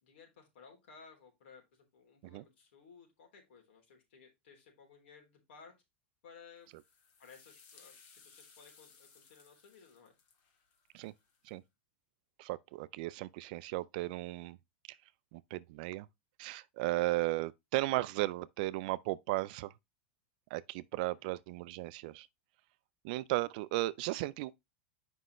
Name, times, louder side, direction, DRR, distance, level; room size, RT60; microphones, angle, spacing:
voice 1, 0.0-5.7 6.2-6.7 7.2-10.2 21.0-21.2, left 5 dB, 70° left, 3.5 m, -58 dB
sound 1, 6.7-11.5, left 5 dB, 40° left, 1.6 m, -62 dB
voice 2, 12.4-14.6 15.3-16.1 16.4-19.7 20.5-22.3 23.0-24.6, right 19 dB, 45° right, 0.4 m, -35 dB
7.7 x 5.4 x 3.1 m
supercardioid pair, 160°, 6 cm